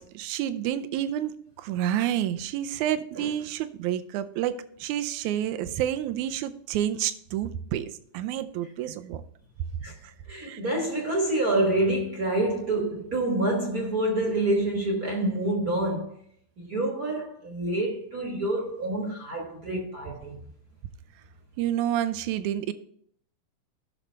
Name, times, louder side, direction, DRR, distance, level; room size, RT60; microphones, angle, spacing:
voice 1, 0.0-4.5 4.8-9.2 10.5-10.6 21.6-22.7, right 11 dB, 80° right, 2.0 m, -29 dB
voice 2, 10.3-16.1 16.6-20.4, right 1 dB, 40° right, 1.5 m, -27 dB
16.0 x 6.3 x 3.3 m
omnidirectional pair, 3.6 m